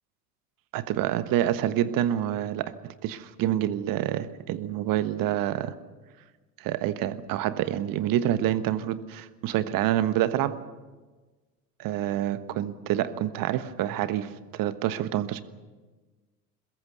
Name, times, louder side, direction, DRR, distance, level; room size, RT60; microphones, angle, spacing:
voice 1, 0.7-5.8 6.6-10.6 11.8-15.4, right 12 dB, 45° right, 14 dB, 1.3 m, -27 dB
22.5 x 21.0 x 6.8 m, 1.3 s
figure-of-eight pair, 70°, 48 cm